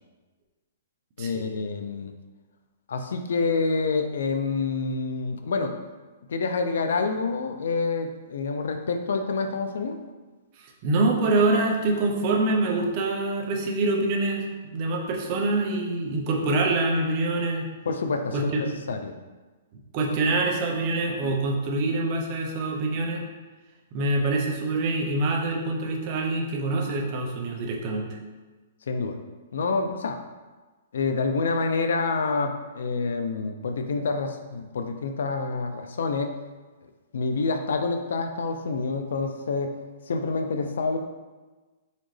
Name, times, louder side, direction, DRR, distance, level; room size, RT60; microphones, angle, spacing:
voice 1, 1.2-2.1 2.9-5.8 6.3-10.0 17.9-19.1 21.2-21.4 28.9-29.2 29.5-30.2 30.9-36.4 37.1-39.7 40.1-41.0, left 4 dB, 80° left, 7 dB, 0.5 m, -27 dB
voice 2, 10.6-14.4 14.7-17.7 18.3-18.6 19.9-23.2 23.9-28.1, right 2 dB, 30° right, 0 dB, 0.7 m, -25 dB
4.1 x 3.9 x 3.2 m, 1.3 s
hypercardioid pair, 165°, 0 cm